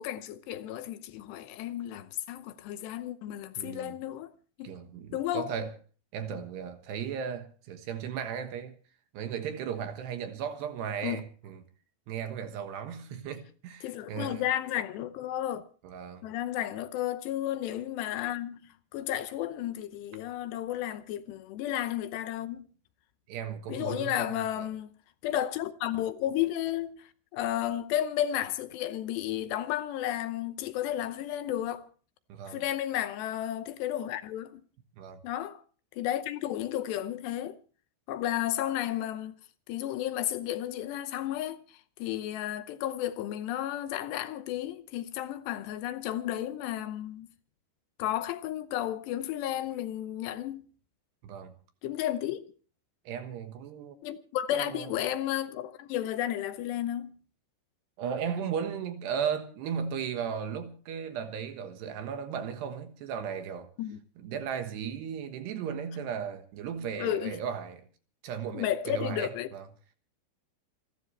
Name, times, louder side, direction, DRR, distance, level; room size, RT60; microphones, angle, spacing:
voice 1, 0.0-4.3 4.6-4.8 5.1-5.6 11.0-11.2 13.8-15.7 16.2-22.7 23.7-24.9 25.2-31.9 32.5-34.6 35.2-35.6 35.9-37.6 38.1-39.3 39.7-47.3 48.0-50.7 51.8-52.4 54.0-57.2 63.8-64.0 67.0-67.4 68.5-69.5, left 12 dB, 75° left, 2.6 m, -33 dB
voice 2, 3.6-4.0 4.6-5.7 6.1-8.8 9.1-11.6 12.1-14.4 15.8-16.2 23.3-24.3 24.6-24.7 32.3-32.6 35.0-35.2 51.2-51.5 53.1-54.0 54.5-54.9 58.0-63.7 64.2-67.8 68.2-69.6, right 7 dB, 70° right, 3.1 m, -36 dB
28.0 x 12.5 x 3.3 m
omnidirectional pair, 5.7 m